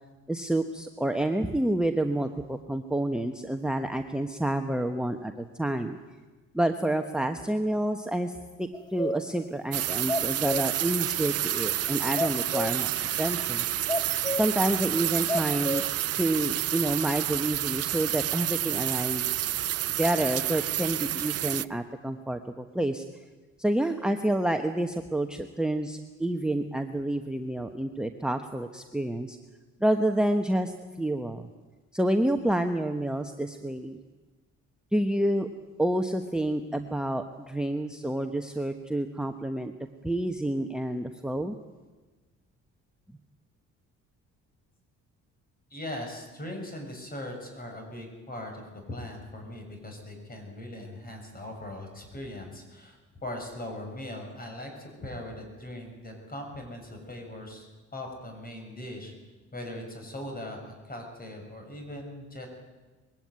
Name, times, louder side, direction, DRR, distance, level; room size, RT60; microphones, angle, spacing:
voice 1, 0.3-6.0 6.5-12.9 13.2-13.6 14.4-15.8 16.1-19.5 19.8-23.0 23.6-29.4 29.8-31.5 31.9-34.0 34.9-35.5 35.8-39.7 40.0-41.6, right 1 dB, 5° right, 5 dB, 1.1 m, -28 dB
sound 1, 8.7-9.4 9.8-9.9 10.1-10.9 12.2-12.9 13.9-14.6 15.3-15.9, left 1 dB, 15° left, 0.8 m, -31 dB
sound 2, 9.7-21.7, right 12 dB, 55° right, 0.6 m, -29 dB
voice 2, 45.7-59.1 59.5-62.5, left 1 dB, 30° left, 3 dB, 6.8 m, -40 dB
21.5 x 16.5 x 9.6 m, 1.3 s
cardioid pair, 90°, 30 cm